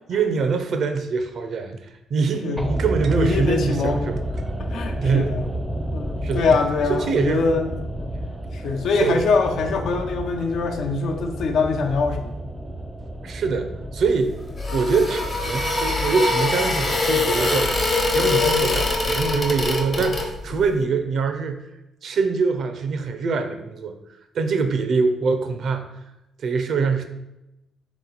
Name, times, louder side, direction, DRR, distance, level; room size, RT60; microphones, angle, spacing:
voice 1, 0.1-4.2 5.0-5.3 6.2-6.5 6.9-7.5 8.1-8.3 9.0-9.2 13.2-14.4 14.7-21.6 22.0-23.9 24.3-25.9 26.4-27.0, right 4 dB, 60° right, 7 dB, 0.5 m, -24 dB
voice 2, 2.3-2.7 3.1-4.2 4.6-5.5 5.9-7.7 8.5-12.4, left 4 dB, 75° left, 5 dB, 0.5 m, -23 dB
sound 1, 2.6-20.8 21.0-21.1, right 1 dB, 5° right, 0.5 m, -32 dB
sound 2, 14.2-20.7, left 3 dB, 40° left, 0.8 m, -23 dB
3.8 x 3.0 x 3.9 m, 0.93 s
cardioid pair, 90°, 0 cm